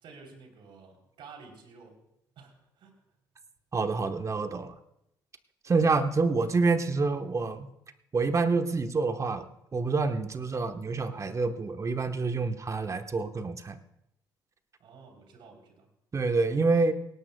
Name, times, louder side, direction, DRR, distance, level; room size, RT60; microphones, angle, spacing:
voice 1, 0.0-2.0 2.4-2.9 14.8-15.9, right 4 dB, 65° right, 3 dB, 3.5 m, -51 dB
voice 2, 3.7-4.8 5.6-7.7 8.1-13.8 16.1-16.9, right 4 dB, 35° right, 8 dB, 1.2 m, -27 dB
19.5 x 18.0 x 2.3 m, 0.80 s
hypercardioid pair, 55°, 9 cm